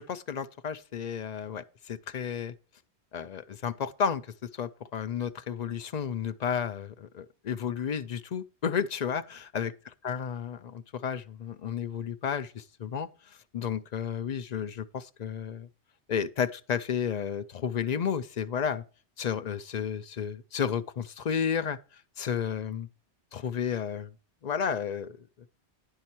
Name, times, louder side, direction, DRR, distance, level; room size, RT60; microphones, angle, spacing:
voice 1, 0.0-2.5 3.1-4.2 4.5-9.7 10.0-15.7 16.1-18.8 19.2-21.8 22.2-22.9 23.3-24.1 24.4-25.2, left 7 dB, 55° left, 0.5 m, -32 dB
10.5 x 5.6 x 4.5 m
omnidirectional pair, 1.1 m